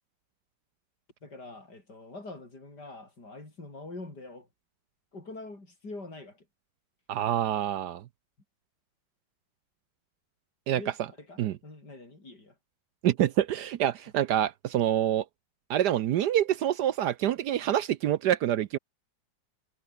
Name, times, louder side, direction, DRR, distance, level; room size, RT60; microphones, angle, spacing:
voice 1, 1.2-4.5 5.1-6.4 10.7-12.5, left 2 dB, 60° left, 6.6 m, -44 dB
voice 2, 7.1-8.0 10.7-10.8 11.4-11.6 13.0-15.2 15.7-18.8, right 11 dB, 70° right, 1.2 m, -26 dB
omnidirectional pair, 2.0 m